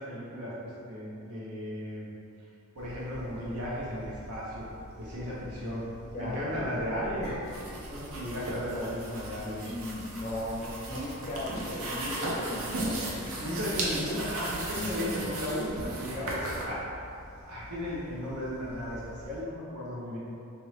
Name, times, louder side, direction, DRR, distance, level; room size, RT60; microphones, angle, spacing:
voice 1, 0.0-2.1 2.7-4.7 5.0-5.8 6.2-7.4 7.9-9.7 13.4-16.8 17.5-20.2, equal, 85° right, -7 dB, 1.0 m, -35 dB
sound 1, 2.8-19.4, left 1 dB, 70° left, 0.7 m, -48 dB
voice 2, 6.1-6.6 9.6-13.4 14.7-15.3, left 1 dB, 35° left, -4 dB, 0.5 m, -37 dB
sound 2, 7.2-8.6 9.6-10.3, equal, 50° right, 1.4 m, -50 dB
sound 3, 7.4-16.6, right 1 dB, 70° right, 0.6 m, -36 dB
3.1 x 2.7 x 3.2 m, 2.6 s
head